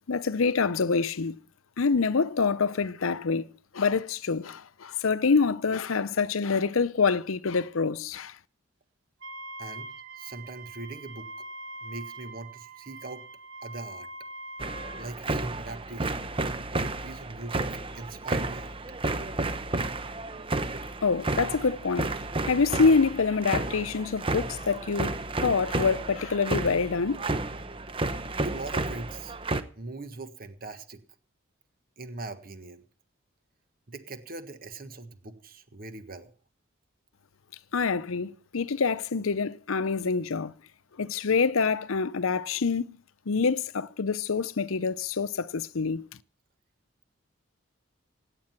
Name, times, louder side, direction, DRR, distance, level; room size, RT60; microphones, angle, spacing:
voice 1, 0.1-1.4 1.8-3.5 3.7-8.4 21.0-22.1 22.5-27.2 37.7-40.5 41.0-43.0 43.3-46.1, left 4 dB, 85° left, 0.7 m, -26 dB
Wind instrument woodwind instrument, 9.2-15.1, right 2 dB, 80° right, 1.4 m, -43 dB
voice 2, 10.1-11.3 11.8-13.2 13.6-14.1 15.0-16.3 16.7-18.7 28.3-29.3 29.8-31.0 32.0-32.8 33.9-36.3, right 2 dB, 45° right, 1.5 m, -41 dB
sound 1, 14.6-29.6, right 2 dB, 25° right, 0.9 m, -32 dB
17.5 x 9.8 x 5.9 m
head